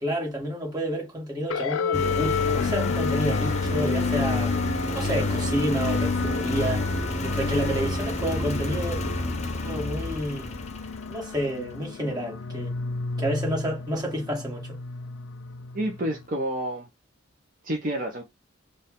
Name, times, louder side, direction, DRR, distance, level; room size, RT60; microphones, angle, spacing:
voice 1, 0.0-4.5 4.9-6.9 7.2-9.0 9.6-10.5 11.1-12.8 13.2-14.8, equal, 20° right, 1.9 m, -29 dB
sound 1, 1.5-16.3, left 5 dB, 80° left, 0.5 m, -32 dB
Engine, 1.9-11.4, left 2 dB, 35° left, 0.7 m, -29 dB
sound 2, 3.8-7.9, left 1 dB, 10° left, 2.1 m, -44 dB
voice 2, 15.7-16.9 17.6-18.2, right 1 dB, 45° right, 0.9 m, -29 dB
4.4 x 2.5 x 3.7 m
head